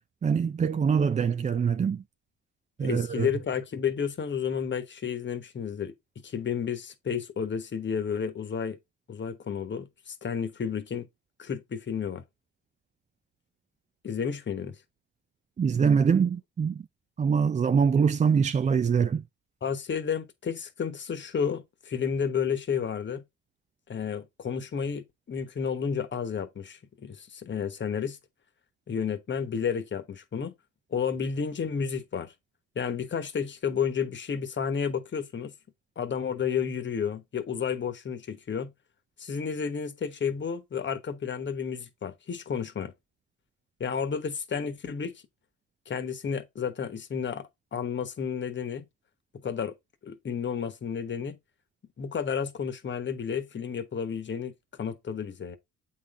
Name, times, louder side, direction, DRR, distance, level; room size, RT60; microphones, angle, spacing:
voice 1, 0.2-2.0 2.8-3.3 15.6-16.8 17.2-19.2, right 6 dB, 25° right, 0.4 m, -24 dB
voice 2, 2.8-5.9 6.2-8.8 9.1-11.1 11.4-12.2 14.0-14.8 19.6-23.2 23.9-28.2 28.9-30.5 30.9-32.3 32.7-35.5 36.0-38.7 39.2-42.9 43.8-45.1 45.9-48.8 49.4-49.7 50.0-51.4 52.0-55.6, left 7 dB, 40° left, 1.2 m, -31 dB
8.2 x 4.0 x 3.6 m
cardioid pair, 90°, 30 cm